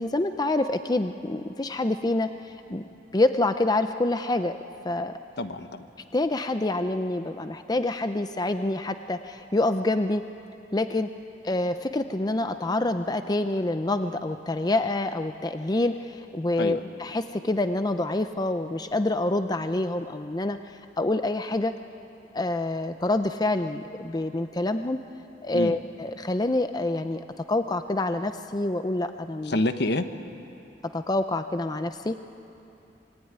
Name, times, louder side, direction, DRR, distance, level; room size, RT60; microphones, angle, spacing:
voice 1, 0.0-2.9 3.1-4.6 4.8-5.2 6.1-10.2 10.7-11.1 11.4-21.7 22.3-25.0 25.4-29.6 30.8-32.2, left 2 dB, 20° left, 9 dB, 0.6 m, -27 dB
voice 2, 5.4-5.9 16.6-16.8 25.5-25.8 29.5-30.0, left 1 dB, 65° left, 9 dB, 1.2 m, -27 dB
26.0 x 22.5 x 9.5 m, 2.8 s
head